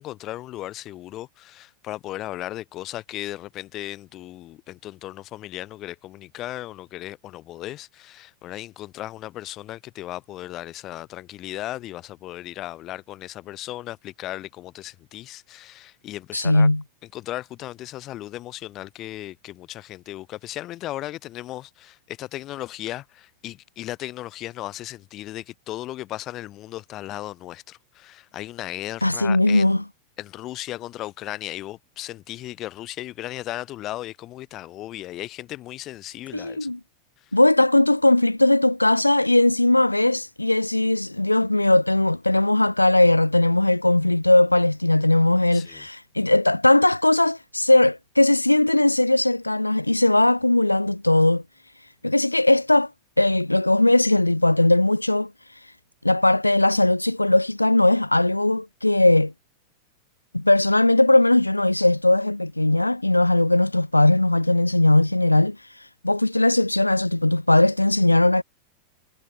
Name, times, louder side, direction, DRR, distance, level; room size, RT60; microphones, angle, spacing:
voice 1, 0.0-16.7 17.1-29.8 30.2-36.7 37.2-37.4 45.5-45.9, left 15 dB, 35° left, 4.6 m, -36 dB
voice 2, 16.3-16.8 29.0-29.8 36.3-36.8 37.3-51.4 52.0-52.9 53.2-55.7 56.0-59.3 60.3-68.4, left 2 dB, 85° left, 0.4 m, -19 dB
figure-of-eight pair, 90°, 0 cm